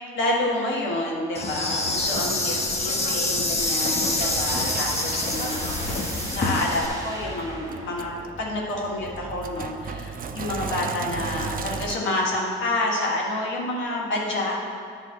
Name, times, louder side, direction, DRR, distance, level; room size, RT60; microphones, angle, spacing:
voice 1, 0.1-5.9 6.3-8.1 8.4-14.6, left 2 dB, 75° left, -3 dB, 1.8 m, -28 dB
Insect, 1.3-6.9, left 2 dB, 30° left, 1.2 m, -26 dB
Sink (filling or washing), 3.1-12.0, right 5 dB, 45° right, 0.6 m, -36 dB
sound 1, 3.6-9.3, right 2 dB, 15° right, 1.3 m, -37 dB
9.5 x 3.9 x 7.2 m, 2.2 s
cardioid pair, 90°, 20 cm